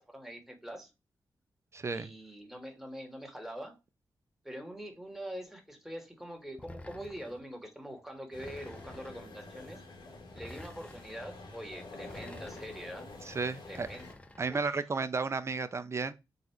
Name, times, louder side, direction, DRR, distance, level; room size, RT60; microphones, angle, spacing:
voice 1, 0.1-0.9 1.9-3.8 4.4-9.8 10.3-13.1 13.7-14.1 14.5-14.8, equal, 5° right, 1.2 m, -44 dB
voice 2, 1.7-2.1 13.3-13.9 14.4-16.1, right 4 dB, 35° right, 0.5 m, -33 dB
sound 1, 6.6-7.5 8.4-9.3 10.3-11.2 12.0-12.9 13.7-14.7, left 1 dB, 15° left, 0.5 m, -50 dB
sound 2, 8.3-14.1, left 2 dB, 85° left, 1.6 m, -48 dB
4.0 x 2.4 x 4.3 m
cardioid pair, 85°, 8 cm